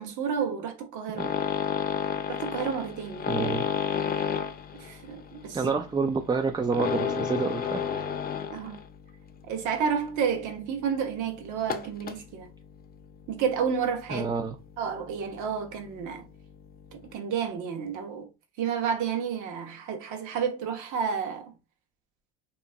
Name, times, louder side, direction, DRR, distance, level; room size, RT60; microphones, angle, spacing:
voice 1, 0.0-1.3 2.3-3.4 4.8-5.8 8.5-8.8 9.5-12.5 13.3-14.3 14.8-16.2 17.1-18.3 18.6-21.5, right 7 dB, 60° right, 1.3 m, -30 dB
sound 1, 1.2-9.0 9.3-9.5 10.1-10.2 10.5-10.6 11.6-12.2 13.4-13.6 14.0-14.5 15.2-15.3 15.6-15.7 15.9-16.0, left 7 dB, 25° left, 0.6 m, -31 dB
voice 2, 3.3-3.6 5.5-7.8 14.1-14.6, right 4 dB, 15° right, 0.3 m, -28 dB
2.9 x 2.7 x 3.5 m
supercardioid pair, 85°, 34 cm